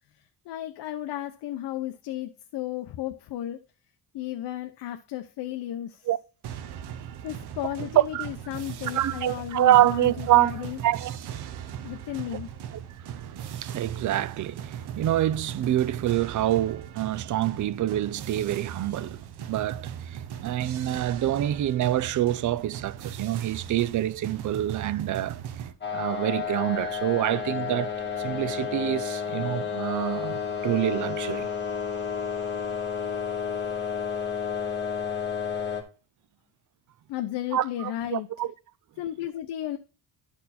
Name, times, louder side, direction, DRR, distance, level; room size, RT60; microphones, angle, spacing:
voice 1, 0.4-3.6 4.1-6.1 7.2-10.8 11.8-12.5 37.1-38.3 39.0-39.8, left 13 dB, 65° left, 0.8 m, -34 dB
sound 1, 6.4-25.7, right 9 dB, 65° right, 1.0 m, -38 dB
voice 2, 8.0-8.3 8.9-11.9 13.0-19.2 19.5-25.4 25.9-31.5 37.5-38.5, right 13 dB, 45° right, 0.5 m, -26 dB
sound 2, 25.8-35.8, left 7 dB, 25° left, 2.0 m, -31 dB
12.0 x 4.4 x 4.2 m
cardioid pair, 145°, 43 cm